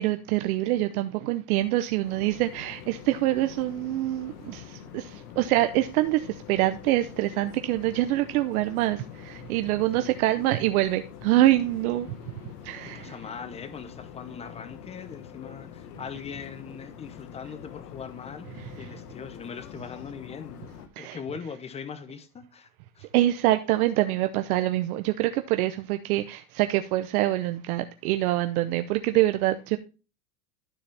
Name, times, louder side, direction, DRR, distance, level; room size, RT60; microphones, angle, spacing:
voice 1, 0.0-12.1 12.6-13.1 21.0-21.2 23.1-29.8, right 15 dB, 70° right, 0.8 m, -25 dB
sound 1, 2.0-20.9, left 9 dB, 80° left, 1.3 m, -45 dB
voice 2, 12.8-18.5 18.8-20.6 21.0-22.7 22.9-23.1, left 6 dB, 15° left, 0.7 m, -40 dB
12.5 x 4.3 x 3.3 m
supercardioid pair, 140°, 45 cm